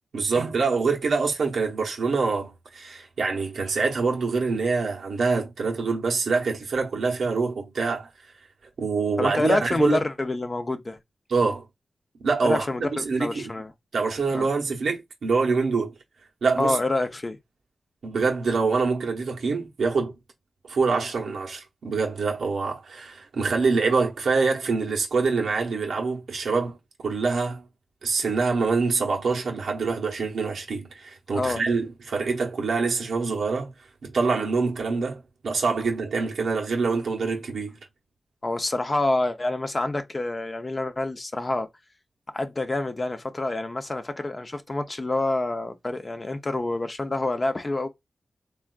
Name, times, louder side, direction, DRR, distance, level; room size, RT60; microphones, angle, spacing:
voice 1, 0.1-8.1 8.8-10.0 11.3-11.7 12.2-13.4 13.9-15.9 16.4-16.8 18.0-20.2 20.7-26.8 27.0-27.6 28.0-33.7 34.0-37.8, right 4 dB, 80° right, 0.9 m, -25 dB
voice 2, 9.2-11.0 12.4-13.7 14.3-14.5 16.6-17.4 31.3-31.6 38.4-41.7 42.3-47.9, left 2 dB, 35° left, 0.6 m, -27 dB
3.4 x 2.4 x 2.3 m
cardioid pair, 50°, 0 cm